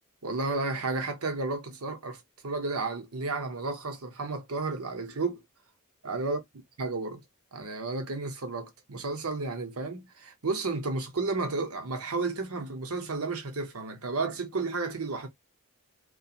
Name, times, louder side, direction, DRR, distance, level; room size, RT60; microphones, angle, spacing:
voice 1, 0.2-5.4 6.0-6.4 6.8-7.2 7.5-15.3, right 3 dB, 85° right, 0.9 m, -32 dB
2.8 x 2.4 x 2.4 m
head